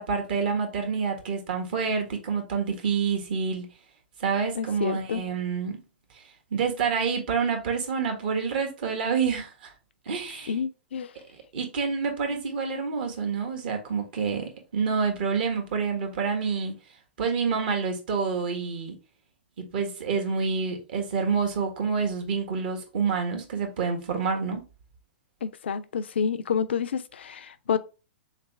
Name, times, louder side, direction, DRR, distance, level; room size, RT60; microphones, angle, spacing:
voice 1, 0.0-3.7 4.2-5.8 6.1-6.2 6.5-9.7 10.0-10.5 11.5-16.7 17.2-18.9 19.6-24.6, right 5 dB, 60° right, 1.4 m, -28 dB
voice 2, 4.6-5.2 10.5-11.1 25.4-27.8, left 7 dB, 75° left, 0.4 m, -29 dB
3.5 x 3.3 x 3.2 m
hypercardioid pair, 115°, 6 cm